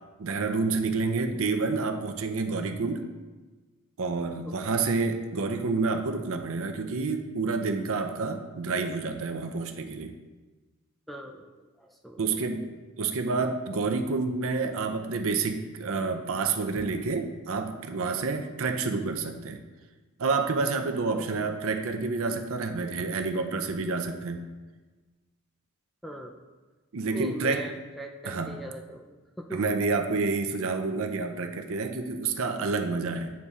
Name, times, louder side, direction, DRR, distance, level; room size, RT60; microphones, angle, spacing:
voice 1, 0.2-3.0 4.0-10.1 12.2-12.6 13.0-19.6 20.2-24.4 26.9-27.7 28.2-28.5 29.5-33.3, right 4 dB, 65° right, 6 dB, 0.6 m, -29 dB
voice 2, 4.4-4.8 11.1-11.5 11.8-12.4 21.1-21.5 26.0-26.4 27.1-29.6, equal, ahead, 2 dB, 0.3 m, -41 dB
8.5 x 3.7 x 4.1 m, 1.3 s
head